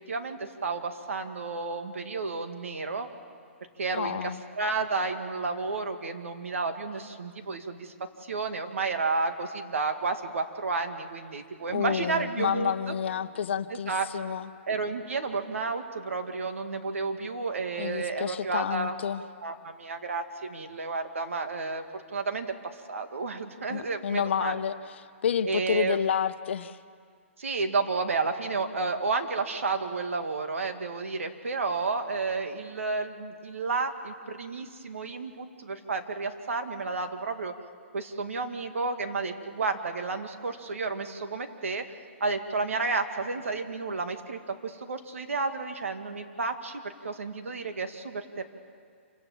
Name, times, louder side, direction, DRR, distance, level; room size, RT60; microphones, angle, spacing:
voice 1, 0.1-3.1 3.8-7.9 8.2-12.9 13.9-14.1 14.7-19.0 19.4-21.8 22.1-24.6 25.4-26.0 27.4-37.5 37.9-41.8 42.2-48.4, right 4 dB, 85° right, 7 dB, 2.1 m, -31 dB
voice 2, 3.9-4.4 11.7-14.5 17.8-19.2 23.7-24.8 25.2-26.8, left 8 dB, 60° left, 12 dB, 1.0 m, -29 dB
27.5 x 18.0 x 7.4 m, 2.2 s
hypercardioid pair, 145°, 7 cm